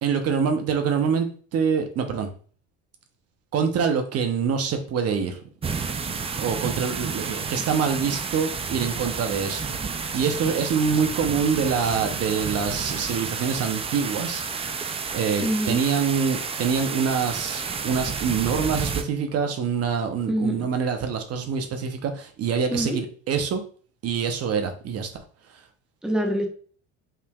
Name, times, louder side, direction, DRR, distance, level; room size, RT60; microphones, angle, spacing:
voice 1, 0.0-2.3 3.5-5.4 6.4-14.8 15.1-23.6 24.0-25.2, right 6 dB, 45° right, 6 dB, 0.8 m, -25 dB
sound 1, 5.6-19.0, right 5 dB, 20° right, 0.4 m, -31 dB
voice 2, 15.4-15.8 20.3-20.7 22.7-23.0 26.0-26.5, right 1 dB, ahead, 2 dB, 0.8 m, -25 dB
5.6 x 3.3 x 2.3 m, 0.43 s
supercardioid pair, 100°, 33 cm